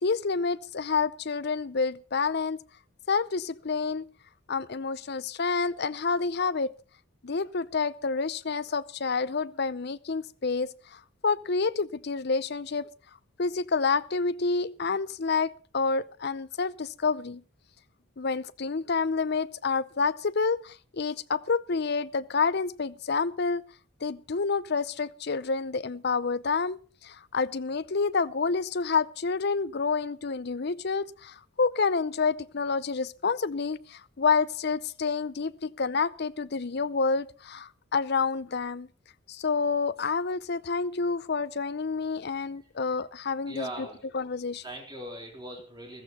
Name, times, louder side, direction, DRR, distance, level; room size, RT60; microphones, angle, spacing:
voice 1, 0.0-2.6 3.1-4.0 4.5-6.7 7.2-12.9 13.4-17.4 18.2-23.7 24.0-26.8 27.0-38.9 39.3-43.9 44.1-44.6, left 4 dB, 50° left, 0.6 m, -28 dB
voice 2, 43.5-44.0 44.6-46.0, right 1 dB, 20° right, 3.9 m, -40 dB
14.5 x 14.5 x 4.3 m
head